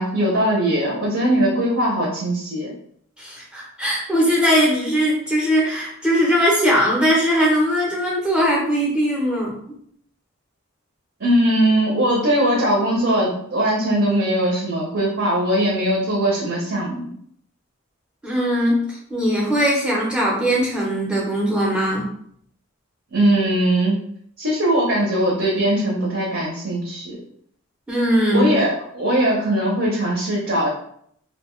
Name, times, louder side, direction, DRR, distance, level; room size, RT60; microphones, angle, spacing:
voice 1, 0.0-2.7 11.2-17.1 23.1-24.0 24.4-27.2 28.3-30.7, right 1 dB, 55° right, -3 dB, 0.7 m, -20 dB
voice 2, 3.2-9.8 18.2-22.1 27.9-28.5, equal, 5° right, -4 dB, 0.6 m, -20 dB
2.6 x 2.2 x 3.0 m, 0.67 s
head